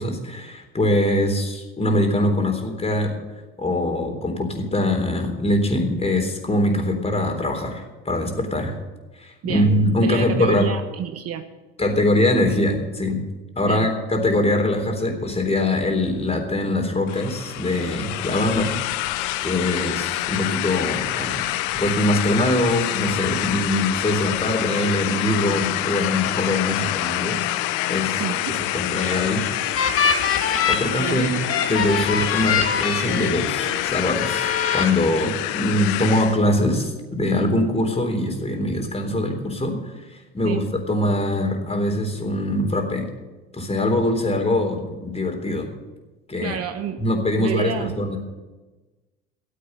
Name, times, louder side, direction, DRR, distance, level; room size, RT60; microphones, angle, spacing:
voice 1, 0.0-3.1 3.6-8.7 9.2-10.7 11.8-13.2 13.6-19.0 19.4-21.4 21.7-27.5 27.9-28.2 28.5-29.4 30.7-31.3 31.7-39.8 40.1-43.1 43.5-45.7 46.3-46.6 47.0-48.2, left 1 dB, 20° left, 3 dB, 3.7 m, -23 dB
voice 2, 10.0-11.4 13.6-13.9 28.2-28.6 31.0-31.3 40.4-40.6 46.4-47.0 47.4-48.0, right 8 dB, 50° right, 9 dB, 1.1 m, -29 dB
sound 1, 17.1-36.4, left 15 dB, 70° left, 0.8 m, -27 dB
sound 2, 28.7-33.8 34.2-34.8, left 6 dB, 45° left, 2.1 m, -24 dB
14.0 x 8.5 x 8.0 m, 1.2 s
hypercardioid pair, 65°, 30 cm